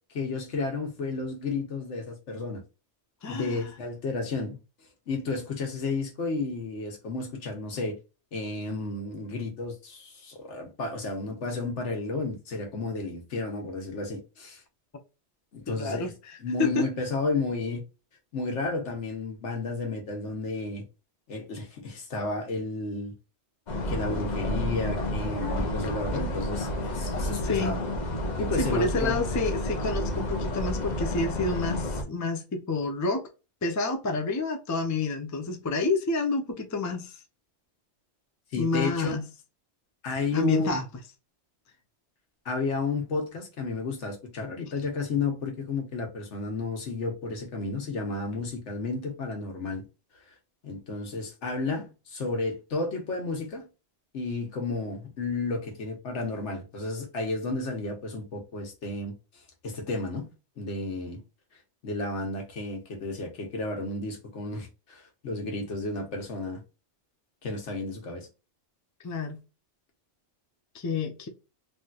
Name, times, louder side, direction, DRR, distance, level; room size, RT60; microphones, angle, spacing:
voice 1, 0.1-2.6 3.3-4.6 5.1-8.0 8.3-14.6 15.5-16.1 16.4-17.8 18.3-20.8 21.3-23.1 23.9-27.8 28.4-29.2 38.5-39.2 40.0-40.7 42.4-49.8 50.6-53.7 54.1-59.1 59.6-60.3 60.6-61.2 61.8-66.6 67.4-68.3, left 3 dB, 80° left, 1.3 m, -32 dB
voice 2, 3.2-3.7 15.7-16.9 27.0-27.1 27.3-27.8 28.6-33.3 33.6-37.2 38.6-39.2 40.3-40.8 69.0-69.4 70.7-71.3, left 3 dB, 25° left, 0.4 m, -29 dB
sound 1, 23.7-32.0, left 1 dB, 45° left, 0.8 m, -30 dB
3.3 x 2.8 x 2.3 m
omnidirectional pair, 1.2 m